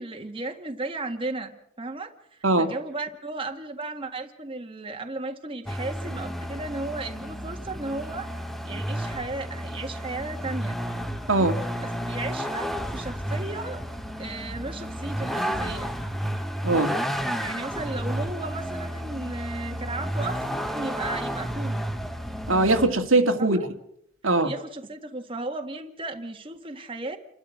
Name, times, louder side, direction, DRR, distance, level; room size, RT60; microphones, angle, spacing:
voice 1, 0.0-2.1 2.6-8.4 8.6-10.8 11.3-11.5 11.8-13.8 14.2-15.9 17.4-21.8 23.5-23.6 24.4-27.2, right 2 dB, 25° right, 3 dB, 1.8 m, -35 dB
Vehicle, 5.7-22.9, equal, ahead, 1.3 m, -32 dB
voice 2, 22.5-23.6 24.2-24.5, right 2 dB, 75° right, 5 dB, 2.0 m, -21 dB
28.5 x 12.5 x 8.3 m, 0.75 s
head